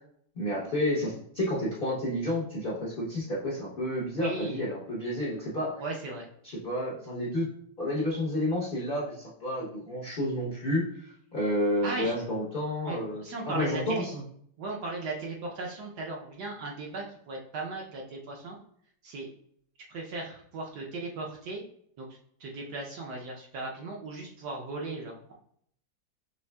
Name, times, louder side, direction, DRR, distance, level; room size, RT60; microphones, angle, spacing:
voice 1, 0.4-5.8 6.4-7.5 7.8-14.2, left 1 dB, 50° left, -6 dB, 0.6 m, -30 dB
voice 2, 4.1-4.6 5.8-6.3 11.8-12.2 12.8-14.0 14.6-18.6 19.0-19.3 19.9-21.6 22.0-22.1 22.4-25.3, right 3 dB, 70° right, -1 dB, 1.1 m, -37 dB
5.3 x 3.2 x 2.2 m, 0.66 s
omnidirectional pair, 2.1 m